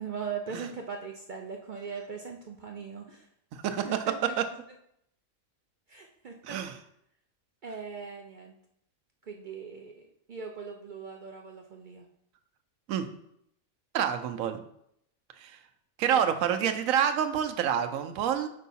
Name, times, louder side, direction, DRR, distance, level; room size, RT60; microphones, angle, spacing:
voice 1, 0.0-3.3 3.7-4.4 5.9-6.6 7.6-8.5 9.2-12.1 16.1-16.4, right 6 dB, 60° right, 2 dB, 0.5 m, -40 dB
voice 2, 3.5-3.9 6.4-6.7 12.9-13.0 13.9-14.6 15.4-15.6 16.0-18.5, right 8 dB, 85° right, 8 dB, 1.0 m, -27 dB
5.4 x 4.6 x 4.1 m, 0.73 s
omnidirectional pair, 1.4 m